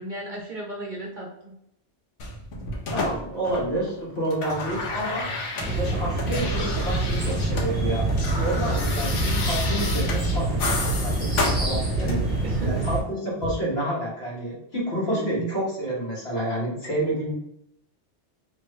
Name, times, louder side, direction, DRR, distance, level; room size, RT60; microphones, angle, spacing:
voice 1, 0.0-1.5 12.0-12.9 15.1-15.5, right 2 dB, 50° right, -1 dB, 0.7 m, -35 dB
sound 1, 2.2-3.9 4.2-7.7 8.0-12.4 13.4-13.6, left 2 dB, 90° left, 1.1 m, -31 dB
voice 2, 2.9-5.3 5.8-8.1 8.4-12.2 12.6-17.3, right 1 dB, 60° left, -5 dB, 1.6 m, -29 dB
sound 2, 5.6-13.0, right 2 dB, 25° right, 1.3 m, -26 dB
3.1 x 2.7 x 3.6 m, 0.76 s
omnidirectional pair, 1.2 m